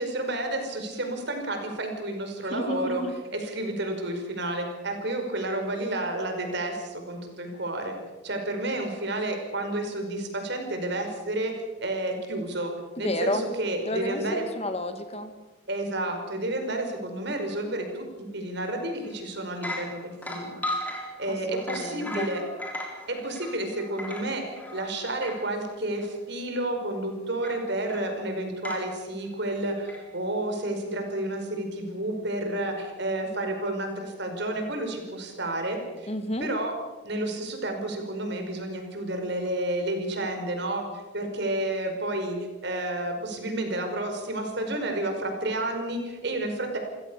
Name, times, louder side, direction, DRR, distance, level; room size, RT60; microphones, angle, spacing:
voice 1, 0.0-3.0 3.3-7.9 8.2-12.7 13.0-14.4 15.7-20.6 21.2-22.4 23.1-36.1 36.4-36.7 37.0-40.8 41.1-46.8, right 1 dB, 55° right, 4 dB, 5.3 m, -31 dB
voice 2, 2.5-3.1 13.0-13.5 13.9-15.3 21.3-22.3 36.1-36.5, left 1 dB, 30° left, 8 dB, 1.9 m, -31 dB
sound 1, 19.0-19.2 19.5-25.5 26.0-26.1 27.4-28.1 28.6-28.9 29.9-30.0, left 1 dB, 10° left, 3.8 m, -37 dB
28.5 x 16.5 x 7.0 m, 1.2 s
head